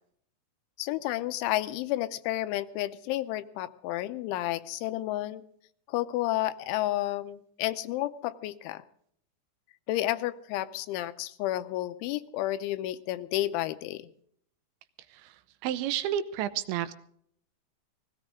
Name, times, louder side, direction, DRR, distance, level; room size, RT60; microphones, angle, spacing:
voice 1, 0.8-5.4 5.9-8.8 9.9-14.1, left 15 dB, 85° left, 12 dB, 3.2 m, -31 dB
voice 2, 15.6-16.9, right 10 dB, 80° right, 13 dB, 3.0 m, -31 dB
18.0 x 17.0 x 3.7 m, 0.65 s
omnidirectional pair, 5.4 m